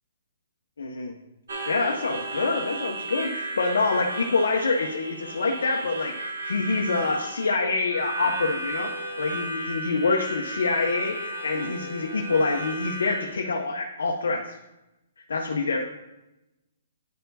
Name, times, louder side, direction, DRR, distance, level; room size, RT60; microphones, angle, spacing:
voice 1, 0.8-1.1 1.7-14.6 15.3-15.8, left 3 dB, 80° left, 2 dB, 0.6 m, -26 dB
Harmonica, 1.5-13.3, right 2 dB, 80° right, 1.1 m, -34 dB
10.0 x 4.4 x 2.6 m, 0.97 s
hypercardioid pair, 130°, 0 cm